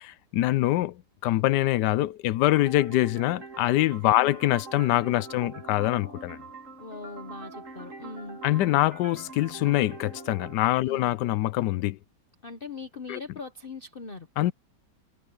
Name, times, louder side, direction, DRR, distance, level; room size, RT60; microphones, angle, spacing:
voice 1, 0.3-6.4 8.4-12.0 13.1-13.2 14.4-14.5, left 15 dB, 80° left, 1.2 m, -24 dB
sound 1, 2.5-10.5, right 3 dB, 45° right, 3.0 m, -44 dB
voice 2, 6.8-8.4 10.8-11.1 12.4-14.3, left 3 dB, 35° left, 1.1 m, -40 dB
omnidirectional pair, 1.8 m